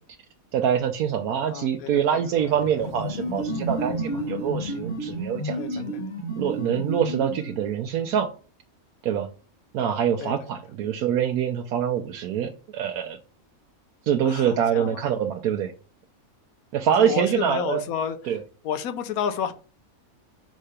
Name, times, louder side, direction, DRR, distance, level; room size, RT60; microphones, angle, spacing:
voice 1, 0.5-5.9 6.4-8.3 9.0-9.3 9.7-13.2 14.1-15.7 16.7-17.8 18.3-18.4, right 9 dB, 90° right, 4 dB, 1.1 m, -25 dB
voice 2, 1.5-2.2 5.6-6.0 10.2-10.3 14.2-15.0 17.0-18.4 18.6-19.5, left 8 dB, 80° left, 9 dB, 1.1 m, -31 dB
Boom, 2.4-5.6, left 5 dB, 50° left, 1.0 m, -39 dB
sound 1, 2.8-7.7, right 1 dB, 35° left, 2.5 m, -31 dB
5.4 x 3.8 x 4.9 m, 0.38 s
omnidirectional pair, 1.5 m